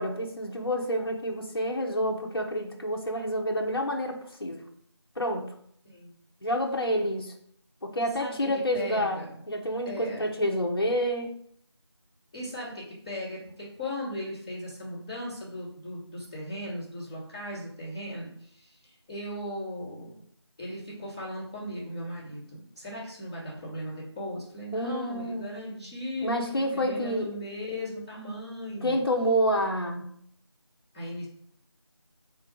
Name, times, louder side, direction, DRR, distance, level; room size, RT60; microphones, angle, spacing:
voice 1, 0.0-4.6 5.2-5.5 6.4-7.3 7.8-11.3 24.7-25.8 26.2-27.3 28.8-30.1, equal, 55° left, 1 dB, 0.6 m, -28 dB
voice 2, 8.7-9.4 9.8-10.3 12.3-20.2 20.6-26.4 26.7-29.0 30.9-31.3, left 1 dB, 15° left, -14 dB, 1.3 m, -37 dB
3.8 x 2.4 x 4.5 m, 0.65 s
figure-of-eight pair, 180°, 15 cm